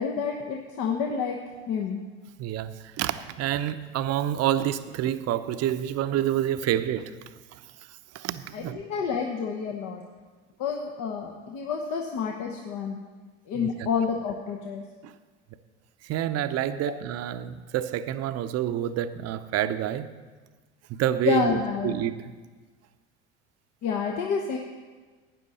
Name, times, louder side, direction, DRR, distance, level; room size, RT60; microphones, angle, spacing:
voice 1, 0.0-1.4 1.7-2.0 8.5-10.0 10.6-13.0 13.5-14.8 16.9-17.0 21.2-21.9 23.8-24.6, left 6 dB, 60° left, 1.1 m, -29 dB
voice 2, 2.4-7.1 8.1-8.8 13.5-13.9 15.0-15.1 16.0-20.1 20.9-22.1, right 11 dB, 45° right, 0.6 m, -28 dB
12.5 x 9.3 x 4.2 m
hypercardioid pair, 75°, 34 cm